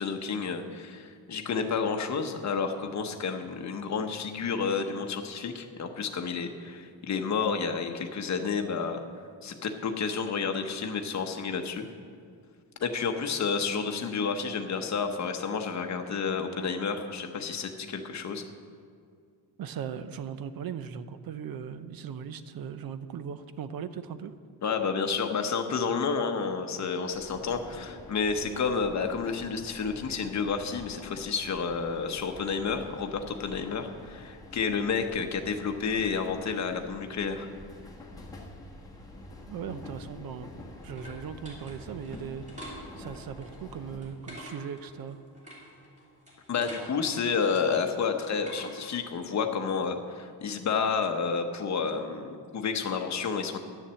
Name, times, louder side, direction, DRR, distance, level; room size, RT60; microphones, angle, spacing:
voice 1, 0.0-9.0 9.4-11.9 12.8-18.4 24.6-37.5 46.5-53.6, left 5 dB, 40° left, 6 dB, 0.9 m, -30 dB
voice 2, 19.6-24.3 39.5-40.5 40.8-45.2, right 7 dB, 55° right, 13 dB, 0.6 m, -38 dB
sound 1, 27.1-44.0, left 2 dB, 10° left, 1.2 m, -47 dB
sound 2, 40.2-49.0, equal, 15° right, 3.0 m, -48 dB
11.0 x 7.1 x 7.5 m, 2.2 s
wide cardioid pair, 180°, 45 cm